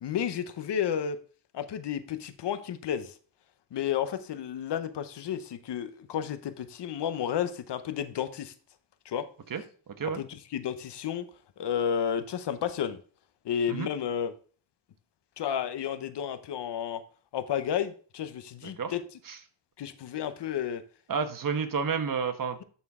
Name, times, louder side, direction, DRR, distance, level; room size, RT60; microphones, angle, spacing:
voice 1, 0.0-1.2 1.5-3.1 3.7-8.5 9.0-9.3 10.1-11.2 11.6-13.0 13.4-14.3 15.4-17.0 17.3-19.0 19.8-20.8, left 9 dB, 80° left, 0.8 m, -32 dB
voice 2, 18.6-18.9 19.3-19.4 21.1-22.6, right 6 dB, 50° right, 1.2 m, -30 dB
11.0 x 4.3 x 3.6 m
cardioid pair, 75°, 41 cm